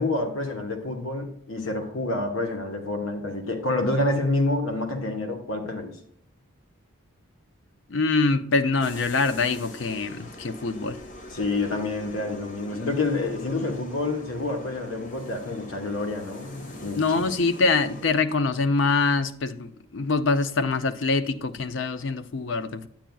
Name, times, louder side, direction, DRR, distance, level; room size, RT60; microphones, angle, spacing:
voice 1, 0.0-6.0 11.3-17.3, left 2 dB, 75° left, 1.1 m, -28 dB
voice 2, 7.9-11.0 17.0-22.9, left 3 dB, 60° left, 0.5 m, -24 dB
sound 1, 8.8-18.1, left 1 dB, 35° left, 0.8 m, -43 dB
9.0 x 8.8 x 2.3 m
head